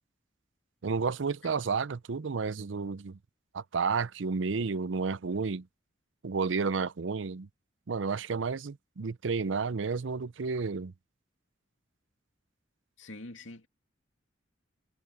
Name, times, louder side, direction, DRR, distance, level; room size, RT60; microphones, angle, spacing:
voice 1, 0.8-3.2 3.5-5.6 6.2-7.5 7.9-10.9, right 4 dB, 80° right, 0.6 m, -31 dB
voice 2, 13.0-13.7, left 2 dB, 85° left, 2.6 m, -45 dB
head